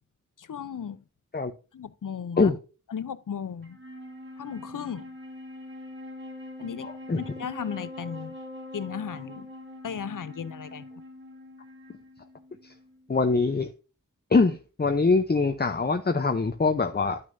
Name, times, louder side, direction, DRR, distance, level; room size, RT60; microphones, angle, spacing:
voice 1, 0.4-1.0 1.7-2.5 2.9-3.8 4.4-5.1 6.6-8.4 8.7-9.5 9.8-10.9, left 7 dB, 75° left, 0.6 m, -36 dB
Wind instrument woodwind instrument, 3.6-13.1, left 1 dB, 35° right, 2.7 m, -43 dB
voice 2, 6.8-7.2 12.6-12.7 13.1-13.7 14.3-17.2, left 4 dB, 30° left, 0.6 m, -23 dB
10.5 x 6.3 x 2.6 m
wide cardioid pair, 45°, 32 cm